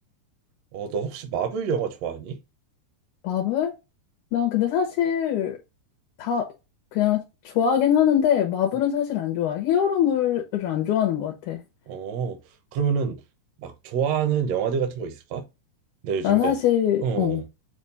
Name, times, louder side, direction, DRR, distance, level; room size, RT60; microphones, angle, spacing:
voice 1, 0.7-2.4 11.9-12.4 12.7-13.2 13.6-15.4 16.0-16.5 17.0-17.5, right 7 dB, 65° right, 1.8 m, -27 dB
voice 2, 3.2-3.7 4.3-5.6 6.2-6.5 6.9-11.6 16.2-17.4, left 9 dB, 70° left, 2.4 m, -23 dB
7.0 x 2.5 x 5.5 m
omnidirectional pair, 3.8 m